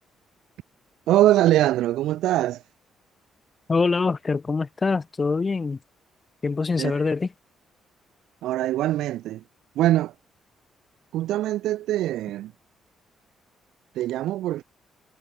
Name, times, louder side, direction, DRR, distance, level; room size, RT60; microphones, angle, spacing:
voice 1, 1.1-2.6 6.8-6.9 8.4-9.4 9.8-10.1 11.1-12.5 14.0-14.6, right 14 dB, 85° right, 0.8 m, -22 dB
voice 2, 3.7-5.8 6.4-7.3, left 4 dB, 30° left, 5.1 m, -24 dB
cardioid pair, 90°, 0 cm